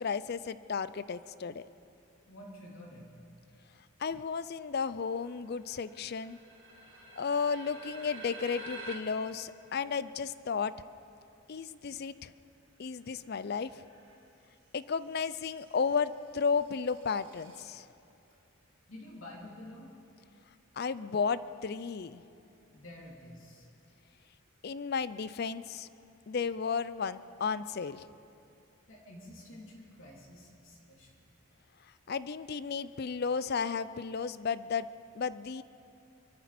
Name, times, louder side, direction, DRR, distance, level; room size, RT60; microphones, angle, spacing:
voice 1, 0.0-1.6 4.0-6.4 7.2-10.7 11.5-12.3 12.8-13.8 14.7-17.9 20.8-22.2 24.6-25.9 26.3-28.0 32.1-34.9 35.1-35.6, left 5 dB, 45° left, 15 dB, 0.4 m, -33 dB
voice 2, 2.3-3.2 18.9-19.9 22.7-23.7 28.9-31.2, left 1 dB, 65° left, -3 dB, 3.3 m, -49 dB
sound 1, 5.2-8.9 13.2-14.1 15.0-17.7, right 2 dB, 60° right, 1.9 m, -50 dB
24.5 x 13.5 x 4.3 m, 2.6 s
head